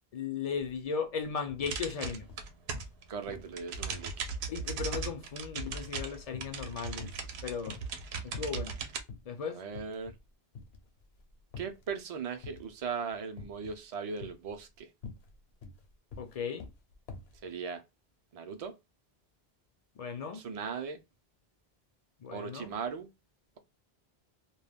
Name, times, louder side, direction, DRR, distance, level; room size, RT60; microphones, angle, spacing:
voice 1, 0.1-2.3 4.5-7.1 7.4-7.8 8.2-8.8 9.3-9.6 16.2-16.7 20.0-20.4 22.2-22.7, left 6 dB, 55° left, 0.4 m, -36 dB
sound 1, 0.6-0.8 1.1-1.8 2.2-3.0 3.3-3.6 3.9-6.7 7.0-8.0 8.3-8.8 9.1-9.3 9.7-10.3 10.5-11.9 12.4-12.8 13.4-13.8 14.2-17.4, left 4 dB, 80° left, 0.9 m, -47 dB
sound 2, 1.7-3.0 3.3-9.0, right 5 dB, 90° right, 0.8 m, -38 dB
voice 2, 3.1-4.1 9.5-10.1 11.6-14.9 17.4-17.8 18.3-18.7 20.3-21.0 22.3-23.1, right 6 dB, 50° right, 0.4 m, -38 dB
2.3 x 2.1 x 3.3 m
omnidirectional pair, 1.0 m